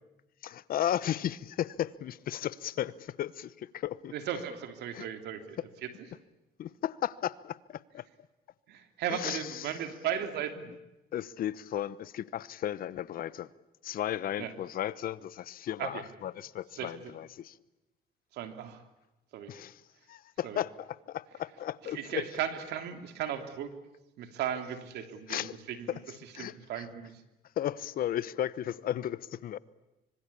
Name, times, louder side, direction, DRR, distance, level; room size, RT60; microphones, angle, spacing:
voice 1, 0.4-4.1 4.9-5.1 6.6-8.0 9.1-9.7 11.1-13.5 13.8-17.6 19.5-19.8 20.1-22.2 25.3-25.6 25.9-26.0 26.3-26.9 27.6-29.6, left 11 dB, 60° left, 1.0 m, -35 dB
voice 2, 4.1-5.9 8.7-10.7 14.4-14.5 15.8-16.0 16.8-16.9 18.3-18.8 19.3-19.5 20.4-20.6 21.9-23.7 24.2-25.9 26.4-27.2, right 9 dB, 75° right, 3.1 m, -36 dB
25.0 x 25.0 x 8.5 m
cardioid pair, 110°, 17 cm